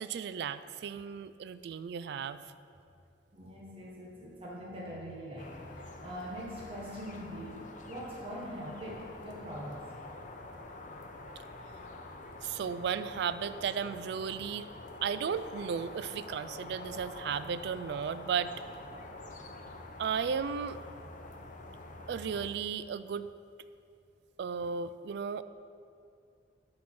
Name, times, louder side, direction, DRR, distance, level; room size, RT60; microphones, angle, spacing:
voice 1, 0.0-2.4 12.4-14.7 15.0-18.5 20.0-20.8 22.1-23.3 24.4-25.4, right 7 dB, 65° right, 13 dB, 0.3 m, -34 dB
voice 2, 3.3-9.9, equal, 30° right, -4 dB, 1.1 m, -43 dB
sound 1, 5.4-22.5, left 2 dB, 45° left, 0.7 m, -46 dB
9.3 x 4.4 x 6.2 m, 2.4 s
head